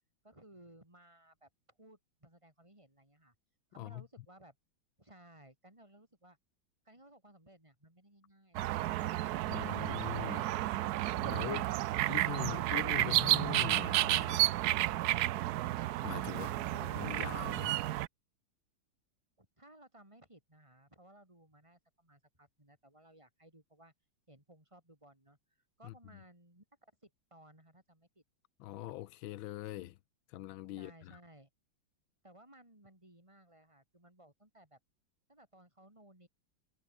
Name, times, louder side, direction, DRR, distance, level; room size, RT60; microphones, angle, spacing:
voice 1, 0.2-3.3 3.7-4.5 5.0-6.4 6.8-9.4 16.3-17.4 19.4-23.9 24.3-25.4 25.8-28.2 30.8-31.5 32.2-34.8 35.3-36.3, right 1 dB, 15° right, 6.4 m, -59 dB
sound 1, 8.5-18.1, right 15 dB, 70° right, 0.9 m, -32 dB
voice 2, 9.5-10.5 11.2-11.8 12.1-14.4 16.0-16.5 16.9-17.7 25.8-25.9 28.6-30.0 30.3-31.2, left 15 dB, 90° left, 1.5 m, -42 dB
omnidirectional pair, 2.1 m